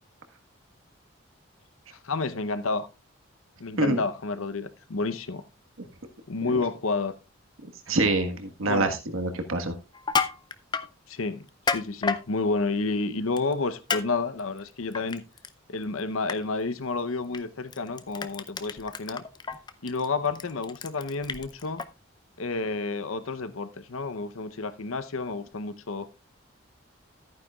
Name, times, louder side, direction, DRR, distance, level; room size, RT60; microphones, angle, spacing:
voice 1, 2.0-2.9 3.6-5.4 6.3-7.1 8.6-9.0 11.1-15.2 15.7-19.2 19.8-21.8 22.4-26.1, left 3 dB, 85° left, 0.8 m, -30 dB
voice 2, 7.9-9.7, right 2 dB, 80° right, 1.5 m, -25 dB
Crushing, 9.9-10.9 11.5-12.2 13.4-13.5 13.9-14.0 14.4-15.5 15.8-16.0 16.3-16.4 17.3-17.4 17.7-21.8, left 5 dB, 20° left, 0.5 m, -30 dB
14.0 x 9.3 x 2.4 m
head